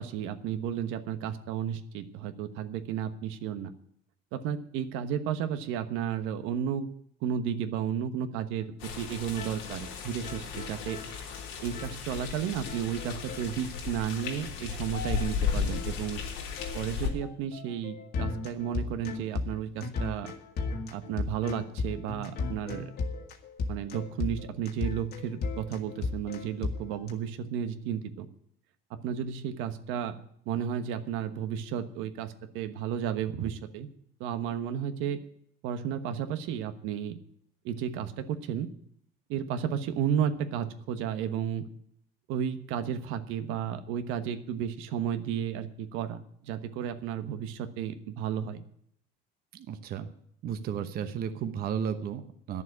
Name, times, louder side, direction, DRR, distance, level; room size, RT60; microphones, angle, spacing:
voice 1, 0.0-3.7 4.3-6.9 7.2-11.0 11.6-16.2 16.7-20.3 20.9-22.9 23.7-28.3 28.9-30.1 30.5-33.9 34.2-35.2 35.6-37.2 37.6-38.7 39.3-41.6 42.3-48.6, right 9 dB, 80° right, 10 dB, 1.2 m, -33 dB
sound 1, 8.6-8.7 8.9-9.1 9.3-9.5 9.8-9.9 10.2-11.9 12.2-12.4 12.7-13.9 14.2-14.4 14.7-14.8 15.1-27.1, left 4 dB, 50° left, 1.9 m, -36 dB
sound 2, 8.8-17.1, left 7 dB, 85° left, 3.4 m, -35 dB
voice 2, 49.5-50.1 50.4-52.6, right 8 dB, 50° right, 9 dB, 1.0 m, -33 dB
11.0 x 7.3 x 9.6 m, 0.69 s
cardioid pair, 140°, 20 cm